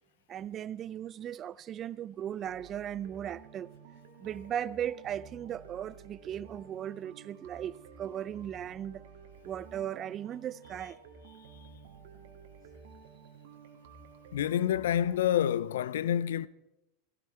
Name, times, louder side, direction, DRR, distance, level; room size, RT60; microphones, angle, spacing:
voice 1, 0.3-3.7 4.2-9.0 9.4-11.0, right 10 dB, 35° right, 0.5 m, -37 dB
sound 1, 2.5-15.3, right 5 dB, 65° right, 2.2 m, -52 dB
voice 2, 14.3-16.5, left 10 dB, 75° left, 0.6 m, -28 dB
17.0 x 17.0 x 4.6 m
hypercardioid pair, 90°, 0 cm